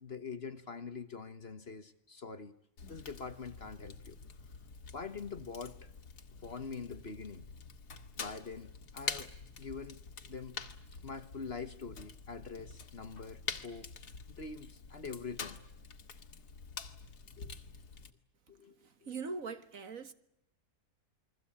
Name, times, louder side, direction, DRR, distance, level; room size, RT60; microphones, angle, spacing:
voice 1, 0.0-2.5 2.9-4.2 4.9-5.9 6.4-7.5 8.2-9.3 9.6-10.6 10.9-15.6 17.4-17.6 18.5-18.7 19.0-19.1, left 5 dB, 45° left, 1.6 m, -44 dB
Fire, 2.8-18.1, left 5 dB, 90° left, 2.3 m, -46 dB
voice 2, 18.8-20.1, right 4 dB, 60° right, 1.9 m, -41 dB
29.0 x 22.0 x 8.7 m
omnidirectional pair, 1.6 m